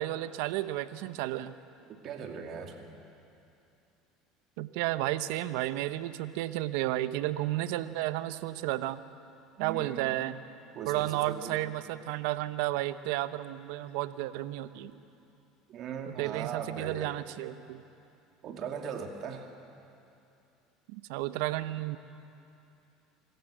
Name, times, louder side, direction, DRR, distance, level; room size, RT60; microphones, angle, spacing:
voice 1, 0.0-1.5 4.6-9.0 9.6-10.4 10.9-14.9 16.1-17.8 20.9-22.0, right 15 dB, 75° right, 13 dB, 0.7 m, -32 dB
voice 2, 1.9-3.0 9.6-10.1 10.7-11.6 15.7-17.2 18.4-19.5, right 6 dB, 50° right, 3 dB, 2.4 m, -39 dB
25.5 x 13.5 x 7.9 m, 2.7 s
supercardioid pair, 100°, 0 cm